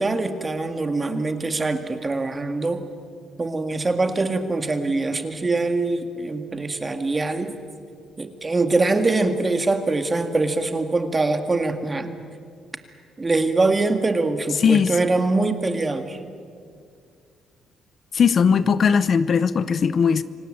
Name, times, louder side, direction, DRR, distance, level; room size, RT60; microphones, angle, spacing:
voice 1, 0.0-2.8 3.4-7.5 8.2-12.2 13.2-16.2, right 3 dB, 25° right, 7 dB, 2.0 m, -23 dB
voice 2, 14.6-14.9 18.1-20.2, left 6 dB, 50° left, 15 dB, 0.7 m, -18 dB
26.0 x 18.0 x 8.8 m, 2.2 s
cardioid pair, 90°, 0 cm